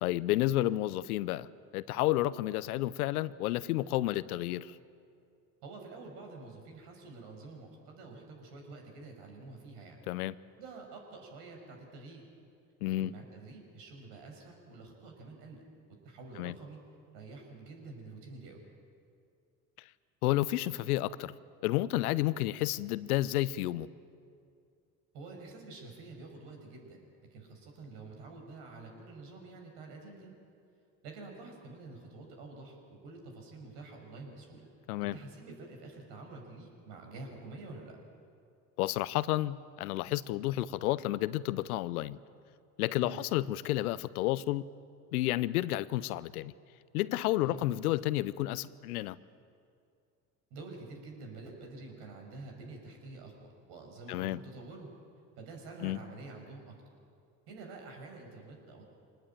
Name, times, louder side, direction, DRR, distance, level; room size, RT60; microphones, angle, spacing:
voice 1, 0.0-1.5 1.7-4.8 10.1-10.3 12.8-13.1 16.4-16.5 20.2-21.3 21.6-23.9 34.9-35.2 38.8-42.2 42.8-44.6 45.1-46.5 46.9-49.2 54.1-54.4 55.8-56.0, left 16 dB, 75° left, 18 dB, 0.8 m, -31 dB
voice 2, 5.6-10.0 10.6-12.3 13.0-15.6 16.0-16.8 17.1-18.6 25.1-27.0 27.3-30.3 31.0-34.7 35.0-38.0 43.0-43.2 47.4-47.6 50.5-54.9 55.4-56.7 57.5-58.8, right 3 dB, 65° right, 2 dB, 6.1 m, -48 dB
25.0 x 19.5 x 9.0 m, 2.4 s
hypercardioid pair, 65°, 44 cm